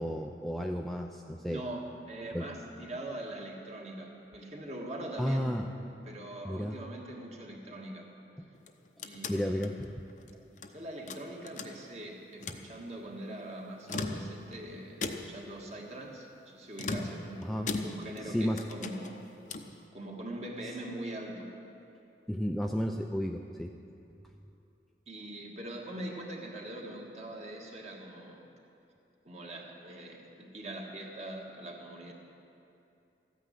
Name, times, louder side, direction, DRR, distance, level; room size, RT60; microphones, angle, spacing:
voice 1, 0.0-1.6 2.3-2.4 5.2-5.7 6.4-6.8 9.3-9.9 17.4-17.7 18.2-18.6 22.3-23.7, equal, ahead, 2 dB, 0.4 m, -32 dB
voice 2, 1.5-5.7 6.0-8.1 9.0-9.8 10.7-19.2 19.9-21.5 25.1-28.4 29.2-32.1, right 1 dB, 40° right, 0 dB, 1.7 m, -42 dB
sound 1, 8.5-10.7 11.1-12.0 12.3-12.7 13.7-14.6 15.0-15.5 16.8-18.3 18.6-19.8, left 3 dB, 45° left, 0.7 m, -39 dB
14.0 x 9.4 x 8.2 m, 2.7 s
head